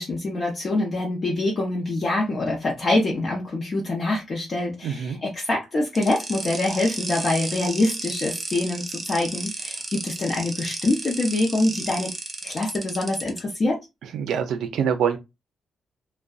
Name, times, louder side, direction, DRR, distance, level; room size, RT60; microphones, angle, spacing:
voice 1, 0.0-12.1 12.4-13.8, left 2 dB, 40° left, 0.6 m, -25 dB
voice 2, 4.8-5.2 14.0-15.2, right 7 dB, 85° right, 0.4 m, -25 dB
sound 1, 6.0-13.4, right 3 dB, 30° right, 0.5 m, -33 dB
2.5 x 2.1 x 2.3 m
cardioid pair, 110°, 0 cm